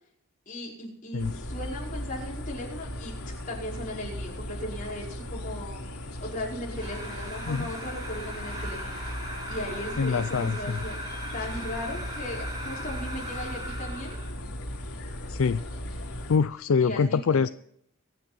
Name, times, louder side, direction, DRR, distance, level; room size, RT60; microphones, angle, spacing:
voice 1, 0.4-3.1 3.5-5.8 6.2-9.2 9.5-11.0 11.3-14.2 16.8-17.4, left 1 dB, 35° left, -3 dB, 5.1 m, -37 dB
sound 1, 1.2-16.4, left 1 dB, 85° left, 3.3 m, -37 dB
sound 2, 6.7-14.4, equal, 20° right, 4.5 m, -39 dB
voice 2, 10.0-10.8 15.3-15.6 16.3-17.5, left 5 dB, 70° left, 14 dB, 0.4 m, -24 dB
23.5 x 9.2 x 4.3 m, 0.69 s
head